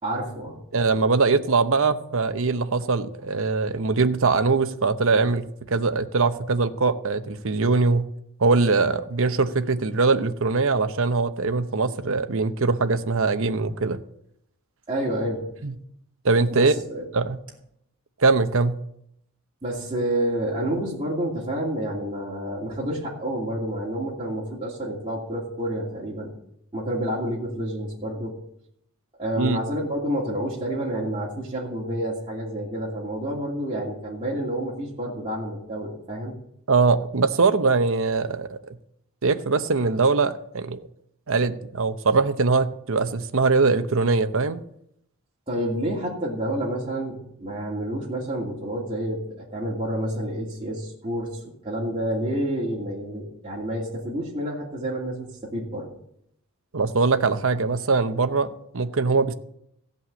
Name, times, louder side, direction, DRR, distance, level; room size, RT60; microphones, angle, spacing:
voice 1, 0.0-0.6 14.9-15.4 16.5-17.0 19.6-26.3 26.7-28.4 29.2-36.3 45.5-55.9, right 1 dB, 25° right, -7 dB, 2.7 m, -29 dB
voice 2, 0.7-8.1 8.4-14.0 15.6-15.7 16.2-16.7 17.1-17.4 18.2-18.8 29.4-29.6 36.7-38.6 39.2-40.8 41.3-44.6 56.7-59.3, right 4 dB, 60° right, 10 dB, 0.8 m, -22 dB
15.5 x 5.4 x 8.4 m, 0.75 s
head